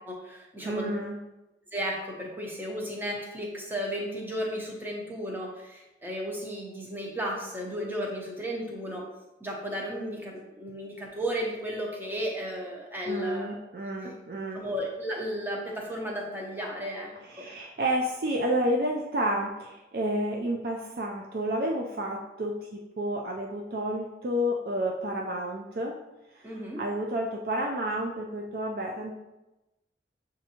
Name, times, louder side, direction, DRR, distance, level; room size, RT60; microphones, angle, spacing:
voice 1, 0.1-0.9 1.7-9.1 9.4-13.5 14.0-14.1 14.5-17.4 26.4-26.8, equal, 10° right, -1 dB, 0.7 m, -34 dB
voice 2, 0.6-1.2 13.1-14.6 17.2-26.0 26.3-29.2, right 1 dB, 55° right, 1 dB, 0.4 m, -30 dB
6.9 x 2.6 x 2.8 m, 0.99 s
head